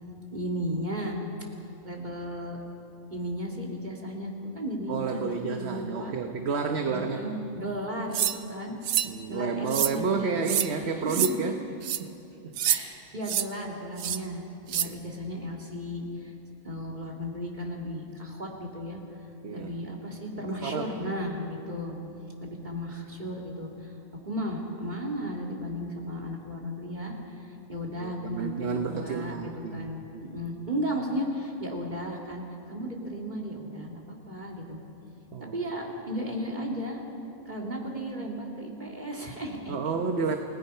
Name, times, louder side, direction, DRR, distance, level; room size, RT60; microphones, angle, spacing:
voice 1, 0.3-1.2 1.8-2.6 3.1-6.1 6.8-8.8 9.3-10.5 10.7-11.3 12.6-16.3 16.6-19.0 19.5-22.0 22.4-23.9 24.2-32.4 32.7-34.8 35.4-37.0 37.5-40.0, equal, 30° right, -1 dB, 3.0 m, -35 dB
voice 2, 4.9-7.2 9.0-11.6 12.0-12.1 12.4-12.5 14.8-15.0 19.4-19.7 20.6-20.9 27.9-30.3 35.3-35.5 39.7-40.4, right 5 dB, 50° right, 5 dB, 1.2 m, -30 dB
sound 1, 8.1-8.4 8.8-9.1 9.7-9.9 10.4-10.7 11.1-11.3 11.8-12.0 12.6-12.8 13.2-13.5 14.0-14.2 14.7-14.9, right 10 dB, 75° right, 1.1 m, -26 dB
29.0 x 18.5 x 5.6 m, 2.9 s
omnidirectional pair, 1.5 m